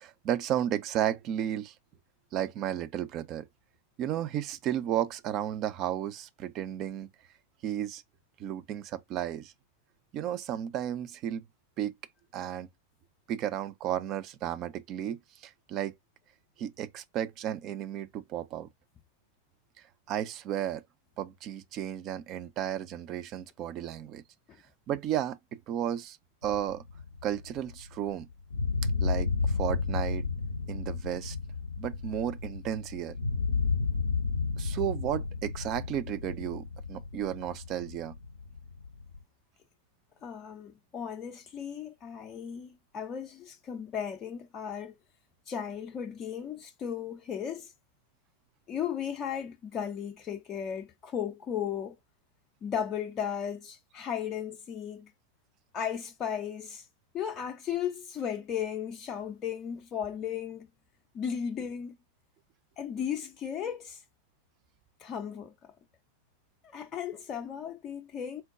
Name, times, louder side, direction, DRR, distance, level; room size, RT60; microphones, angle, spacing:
voice 1, 0.0-1.7 2.3-3.5 4.0-7.1 7.6-8.0 8.4-9.5 10.1-11.4 11.8-11.9 12.3-12.7 13.3-15.9 16.6-18.7 20.1-20.8 21.2-24.2 24.9-25.4 25.7-26.2 26.4-26.8 27.2-28.3 29.0-30.3 30.7-31.4 31.8-33.2 34.6-38.1, right 11 dB, 35° right, 0.5 m, -33 dB
sound 1, 26.4-28.2 28.5-39.2, left 4 dB, 75° left, 0.5 m, -32 dB
voice 2, 40.2-44.9 45.5-47.7 48.7-52.0 52.6-55.1 55.7-56.9 57.1-60.7 61.1-62.0 62.8-64.0 65.0-65.7 66.6-68.4, left 8 dB, 30° left, 0.5 m, -35 dB
4.4 x 2.2 x 3.6 m
figure-of-eight pair, 90°, 0 cm